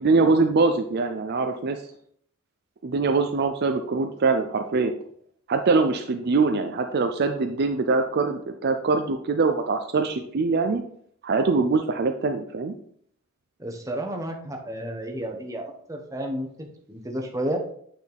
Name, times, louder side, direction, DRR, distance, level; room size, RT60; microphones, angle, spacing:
voice 1, 0.0-1.8 2.8-4.9 5.5-10.8 11.2-12.7, right 4 dB, 50° right, 6 dB, 0.5 m, -23 dB
voice 2, 13.6-17.6, right 1 dB, 15° right, 2 dB, 1.0 m, -32 dB
8.4 x 4.3 x 3.4 m, 0.63 s
head